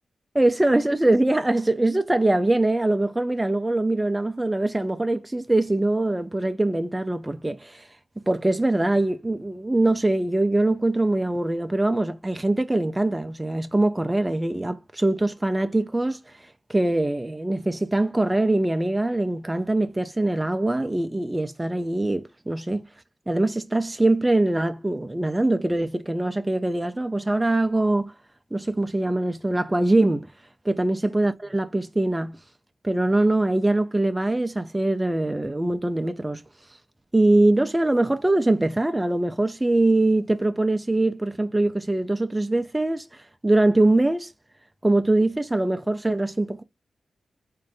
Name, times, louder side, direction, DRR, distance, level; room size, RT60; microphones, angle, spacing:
voice 1, 0.4-7.9 8.3-22.8 23.3-28.1 28.5-30.3 30.7-32.4 32.8-36.4 37.1-44.3 44.8-46.6, right 2 dB, 15° right, 0.3 m, -23 dB
3.7 x 2.5 x 3.4 m
wide cardioid pair, 100°, 0 cm